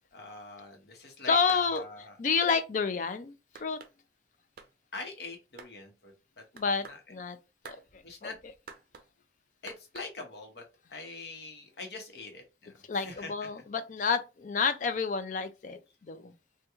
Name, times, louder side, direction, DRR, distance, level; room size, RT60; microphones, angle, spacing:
voice 1, 0.1-2.2 4.9-6.4 6.8-7.0 8.0-8.4 9.6-10.6 10.9-13.5, left 3 dB, 65° left, 0.9 m, -44 dB
voice 2, 1.3-1.8 2.2-3.8 6.5-7.4 7.7-8.3 12.9-16.3, left 5 dB, 45° left, 0.4 m, -30 dB
sound 1, 1.5-1.9 2.5-2.6 3.6-3.9 4.6-4.7 5.6-5.7 6.6-7.0 7.6-7.8 8.7-9.1 9.7-10.1, right 5 dB, 55° right, 0.5 m, -48 dB
3.5 x 2.2 x 2.9 m
head